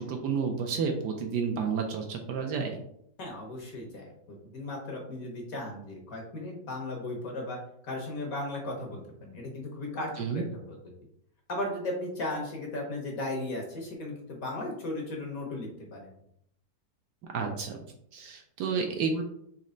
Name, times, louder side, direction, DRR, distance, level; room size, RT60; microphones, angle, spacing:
voice 1, 0.0-2.8 10.2-10.4 17.3-17.8 18.1-19.2, right 5 dB, 70° right, 2 dB, 1.1 m, -30 dB
voice 2, 3.2-7.6 7.8-10.4 11.5-16.1, left 2 dB, 55° left, 0 dB, 1.2 m, -36 dB
4.2 x 3.0 x 3.8 m, 0.74 s
omnidirectional pair, 2.1 m